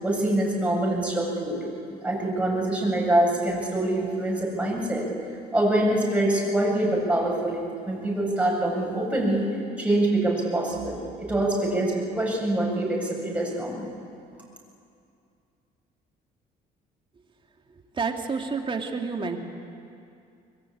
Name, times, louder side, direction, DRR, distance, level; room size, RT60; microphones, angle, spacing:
voice 1, 0.0-1.6 2.0-5.1 5.5-9.4 9.8-13.9, right 1 dB, 10° right, -3 dB, 7.8 m, -25 dB
voice 2, 18.0-19.4, right 4 dB, 30° right, 3 dB, 2.7 m, -29 dB
25.0 x 22.5 x 8.9 m, 2.5 s
cardioid pair, 110°, 17 cm